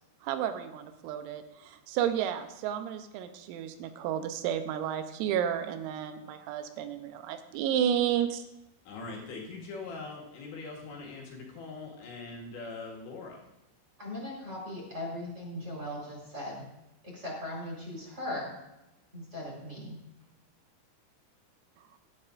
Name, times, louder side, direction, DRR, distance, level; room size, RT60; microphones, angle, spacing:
voice 1, 0.2-8.4, right 9 dB, 85° right, 8 dB, 3.5 m, -32 dB
voice 2, 8.9-13.4, left 3 dB, 65° left, -2 dB, 3.9 m, -42 dB
voice 3, 14.0-16.6 17.0-18.4 19.1-20.0, left 1 dB, 15° right, -4 dB, 3.7 m, -38 dB
17.5 x 12.0 x 2.5 m, 0.92 s
omnidirectional pair, 5.9 m